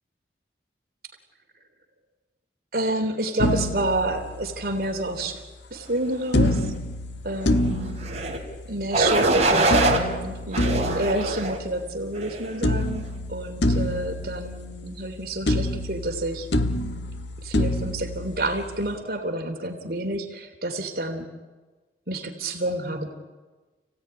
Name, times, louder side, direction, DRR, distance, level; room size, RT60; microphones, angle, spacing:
voice 1, 2.7-5.4 5.7-6.7 7.2-8.0 8.7-9.9 10.2-13.0 13.3-16.5 17.4-21.3 22.1-23.1, right 1 dB, 55° right, 4 dB, 3.3 m, -29 dB
sound 1, 3.4-4.9 6.3-8.9 9.7-12.3 12.6-15.2 15.5-18.9, left 1 dB, 75° left, 1.3 m, -27 dB
sound 2, 8.0-8.4 8.9-10.0 10.5-11.6 12.2-12.5, right 2 dB, 35° right, 3.9 m, -23 dB
30.0 x 17.0 x 9.8 m, 1.3 s
head